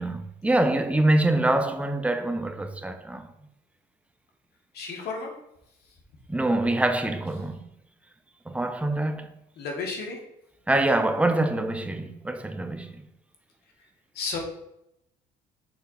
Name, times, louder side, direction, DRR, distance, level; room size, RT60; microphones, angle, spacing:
voice 1, 0.0-3.3 6.3-7.6 8.5-9.3 10.7-13.1, right 2 dB, 10° right, 0.7 m, -25 dB
voice 2, 4.7-5.3 9.6-10.2 14.1-14.4, left 4 dB, 75° left, 1.9 m, -32 dB
6.1 x 3.8 x 5.5 m
cardioid pair, 110°, 17 cm